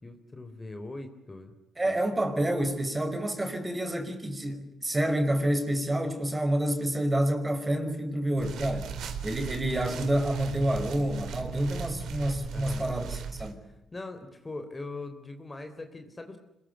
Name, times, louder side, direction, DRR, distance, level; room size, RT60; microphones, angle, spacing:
voice 1, 0.0-1.5 12.5-12.9 13.9-16.4, left 2 dB, 20° left, 3.4 m, -41 dB
voice 2, 1.8-8.9 9.2-13.6, right 1 dB, 15° right, 5.3 m, -28 dB
sound 1, 8.3-13.5, right 5 dB, 75° right, 3.7 m, -37 dB
26.0 x 21.5 x 9.4 m
cardioid pair, 90°, 0 cm